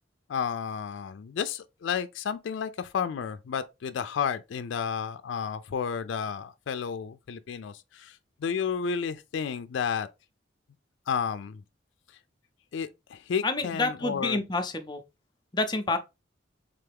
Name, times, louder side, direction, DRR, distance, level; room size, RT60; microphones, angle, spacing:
voice 1, 0.3-10.1 11.1-11.6 12.7-14.4, left 7 dB, 80° left, 0.4 m, -32 dB
voice 2, 13.4-15.0 15.5-16.0, left 2 dB, 25° left, 0.5 m, -28 dB
3.8 x 3.3 x 3.4 m
head